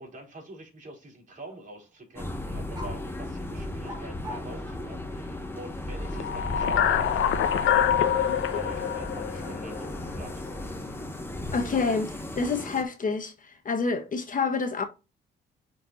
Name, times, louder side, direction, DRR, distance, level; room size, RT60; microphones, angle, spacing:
voice 1, 0.0-10.6, right 1 dB, 40° right, 4.2 m, -45 dB
sound 1, 1.3-1.9 2.2-2.3 2.7-3.0 3.8-5.5 7.8-10.0 11.8-12.5, equal, 20° right, 2.0 m, -46 dB
sound 2, 2.2-12.8, left 1 dB, 10° left, 1.5 m, -36 dB
sound 3, 6.0-10.3, left 9 dB, 85° left, 0.9 m, -25 dB
voice 2, 11.5-13.3 13.6-14.8, left 4 dB, 40° left, 1.3 m, -27 dB
8.7 x 4.6 x 2.6 m
cardioid pair, 90°, 20 cm